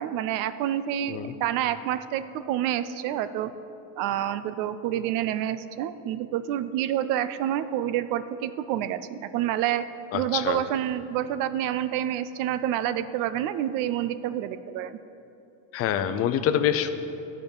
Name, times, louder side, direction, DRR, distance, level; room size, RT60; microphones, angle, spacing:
voice 1, 0.0-3.5 4.0-9.8 10.1-15.0, right 11 dB, 55° right, 13 dB, 0.5 m, -28 dB
voice 2, 10.1-10.6 15.7-16.9, left 10 dB, 35° left, 10 dB, 0.6 m, -25 dB
12.5 x 5.3 x 8.8 m, 2.8 s
cardioid pair, 155°, 40 cm